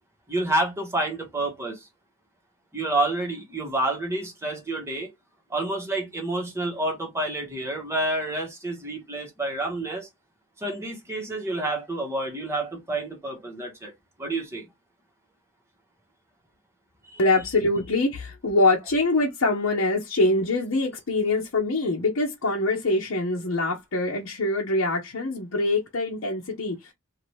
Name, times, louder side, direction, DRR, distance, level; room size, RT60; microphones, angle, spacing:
voice 1, 0.3-1.9 2.7-5.1 5.5-10.1 10.6-13.9 14.2-14.6 17.1-17.2, right 2 dB, 15° right, 1.2 m, -29 dB
voice 2, 17.2-26.9, left 2 dB, 70° left, 0.8 m, -24 dB
2.8 x 2.6 x 3.1 m
head